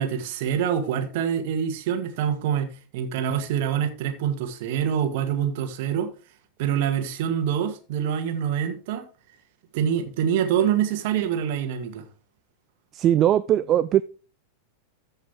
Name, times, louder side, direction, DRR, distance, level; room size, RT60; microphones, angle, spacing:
voice 1, 0.0-6.1 6.6-9.0 9.7-12.0, right 9 dB, 50° right, 1.8 m, -25 dB
voice 2, 12.9-14.0, right 11 dB, 30° right, 0.4 m, -20 dB
14.0 x 5.6 x 3.5 m
figure-of-eight pair, 90°, 0 cm